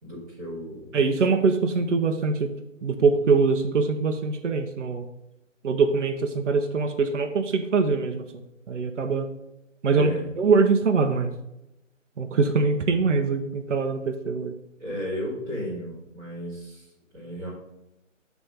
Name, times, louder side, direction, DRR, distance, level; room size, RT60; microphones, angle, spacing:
voice 1, 0.0-0.9 9.9-10.3 14.8-17.5, equal, 15° right, -10 dB, 2.4 m, -34 dB
voice 2, 0.9-2.5 2.8-5.0 5.6-8.3 8.7-9.3 9.8-10.1 10.4-11.3 12.2-14.5, right 4 dB, 65° right, 5 dB, 0.8 m, -23 dB
7.1 x 3.5 x 5.6 m, 0.89 s
hypercardioid pair, 170°, 39 cm